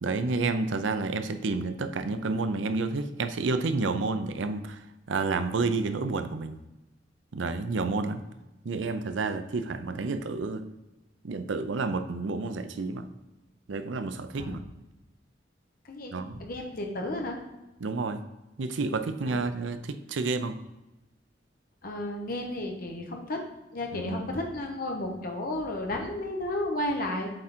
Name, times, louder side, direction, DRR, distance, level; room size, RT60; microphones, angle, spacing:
voice 1, 0.0-4.8 5.1-6.6 7.3-8.2 8.6-10.6 11.2-13.0 13.7-14.6 16.1-16.4 17.8-18.2 18.6-20.5 23.9-24.2, right 3 dB, 80° right, 10 dB, 0.5 m, -30 dB
voice 2, 16.4-17.4 19.3-19.5 21.8-23.4 23.7-27.3, left 1 dB, 50° left, 2 dB, 1.1 m, -33 dB
7.7 x 3.7 x 4.4 m, 1.0 s
head